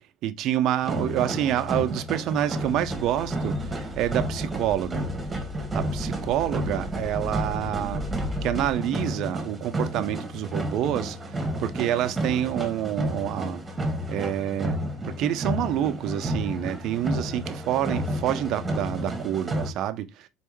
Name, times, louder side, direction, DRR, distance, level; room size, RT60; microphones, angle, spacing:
voice 1, 0.2-5.1 5.6-8.0 8.4-13.6 14.1-20.3, right 11 dB, 65° right, 0.6 m, -28 dB
sound 1, 0.8-19.7, equal, 25° right, 1.4 m, -31 dB
sound 2, 2.4-8.7, left 1 dB, ahead, 1.5 m, -38 dB
4.3 x 3.4 x 3.1 m
hypercardioid pair, 80°, 0 cm